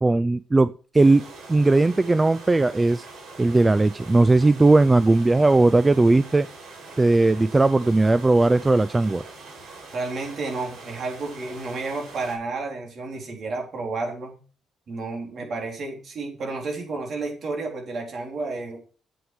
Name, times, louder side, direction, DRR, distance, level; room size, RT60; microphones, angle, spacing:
voice 1, 0.0-1.2 1.5-3.0 3.4-6.5 7.0-9.2, right 2 dB, 20° right, 15 dB, 0.4 m, -18 dB
sound 1, 1.0-12.4, right 3 dB, 75° right, 4.7 m, -43 dB
voice 2, 9.9-14.4 14.9-18.8, right 3 dB, 55° right, 1 dB, 3.8 m, -31 dB
8.1 x 7.9 x 4.9 m, 0.37 s
cardioid pair, 90°, 0 cm